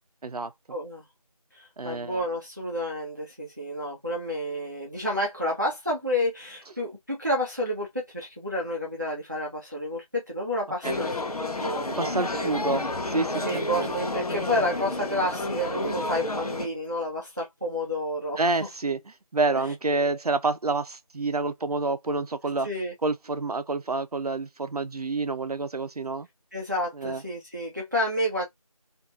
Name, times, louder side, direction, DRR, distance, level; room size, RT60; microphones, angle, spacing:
voice 1, 0.7-1.0 1.5-12.5 13.4-18.4 22.6-22.9 26.5-28.4, left 1 dB, 30° right, 0.6 m, -30 dB
voice 2, 1.8-2.2 10.8-11.0 12.0-13.9 18.4-19.0 19.3-22.7 23.0-26.3 27.0-27.2, right 3 dB, 80° right, 0.6 m, -28 dB
sound 1, 10.8-16.7, left 2 dB, 80° left, 0.7 m, -30 dB
2.5 x 2.5 x 2.9 m
figure-of-eight pair, 175°, 19 cm